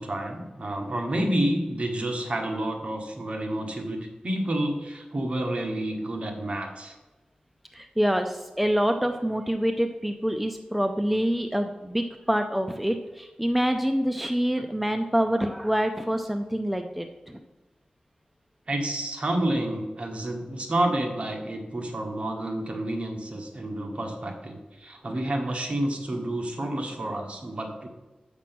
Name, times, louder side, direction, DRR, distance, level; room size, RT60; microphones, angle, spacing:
voice 1, 0.0-6.9 18.7-27.9, right 1 dB, 45° right, 3 dB, 1.3 m, -29 dB
voice 2, 7.7-17.4, equal, 5° right, 6 dB, 0.4 m, -26 dB
6.9 x 6.0 x 6.1 m, 1.1 s
wide cardioid pair, 115°, 3 cm